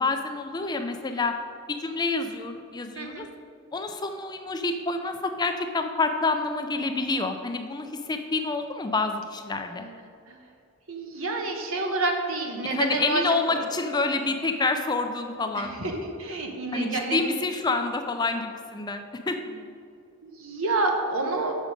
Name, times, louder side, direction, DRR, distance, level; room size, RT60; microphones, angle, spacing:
voice 1, 0.0-1.3 1.7-3.3 3.7-9.9 12.6-15.7 16.7-19.4, left 3 dB, 20° left, 6 dB, 0.4 m, -28 dB
voice 2, 3.0-3.3 9.7-10.0 10.3-10.4 10.9-13.2 15.6-17.2 20.2-21.6, right 2 dB, 70° right, 3 dB, 1.1 m, -28 dB
6.7 x 6.2 x 5.1 m, 2.3 s
head